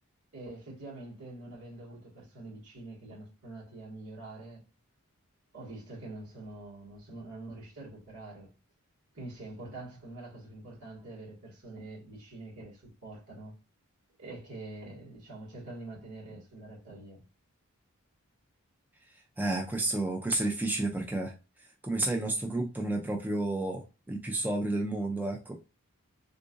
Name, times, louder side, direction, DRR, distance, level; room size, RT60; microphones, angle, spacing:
voice 1, 0.3-4.6 5.5-8.5 9.1-13.5 14.2-17.2, right 2 dB, 85° right, 1.8 m, -45 dB
voice 2, 19.4-21.3 21.8-25.5, right 2 dB, 10° right, 0.3 m, -31 dB
3.7 x 2.5 x 2.5 m
head